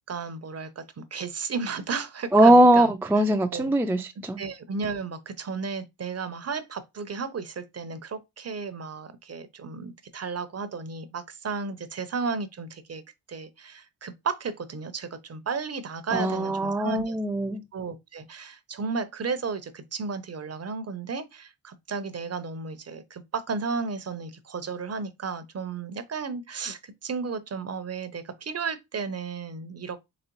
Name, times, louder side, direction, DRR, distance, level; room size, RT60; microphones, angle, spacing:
voice 1, 0.1-0.8 1.1-2.9 3.5-3.7 4.4-13.0 13.3-17.2 17.7-30.0, right 5 dB, 40° right, 0.7 m, -33 dB
voice 2, 2.3-4.4 16.1-17.6, right 1 dB, 5° right, 0.4 m, -20 dB
4.0 x 3.0 x 3.0 m
cardioid pair, 65°, 40 cm